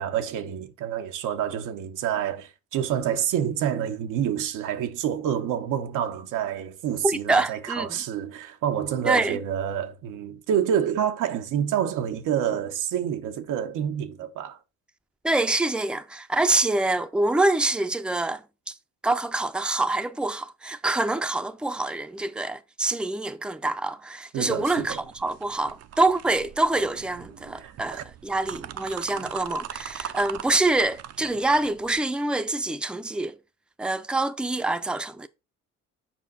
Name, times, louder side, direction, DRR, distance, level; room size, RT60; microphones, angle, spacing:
voice 1, 0.0-14.6 24.3-25.0 27.6-28.0, right 9 dB, 90° right, 1.0 m, -28 dB
voice 2, 7.0-8.0 9.1-9.4 15.2-18.7 19.0-33.4 33.8-35.3, right 2 dB, 5° right, 0.6 m, -26 dB
sound 1, 24.5-32.0, right 10 dB, 55° right, 0.6 m, -41 dB
7.3 x 5.1 x 4.1 m
cardioid pair, 90°, 30 cm